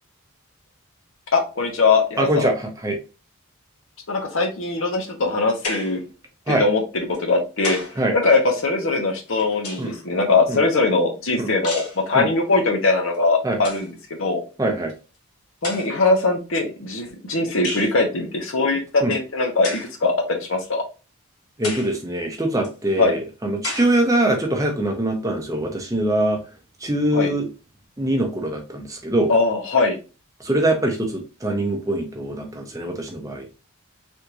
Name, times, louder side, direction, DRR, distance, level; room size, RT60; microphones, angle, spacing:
voice 1, 1.3-2.5 4.1-6.0 6.5-7.8 8.1-13.9 14.2-14.4 15.6-20.8 23.0-23.1 27.1-27.3 29.3-30.0, left 3 dB, 60° left, 2 dB, 0.8 m, -21 dB
voice 2, 2.2-3.0 6.5-6.6 8.0-8.1 9.8-9.9 10.5-10.6 11.4-11.5 12.1-12.3 13.4-13.6 14.6-14.9 19.0-19.1 21.6-26.4 26.8-27.5 28.0-29.3 30.4-33.5, right 1 dB, 15° right, 2 dB, 0.7 m, -23 dB
sound 1, 5.6-6.1 7.1-8.0 9.1-10.1 11.6-12.0 13.1-13.2 13.5-13.9 14.9-15.0 15.6-16.1 17.6-18.0 19.6-20.0 20.6-20.7 21.6-22.0 22.6-22.7 23.6-24.0, left 2 dB, 90° left, 0.9 m, -32 dB
3.5 x 2.5 x 2.8 m, 0.33 s
head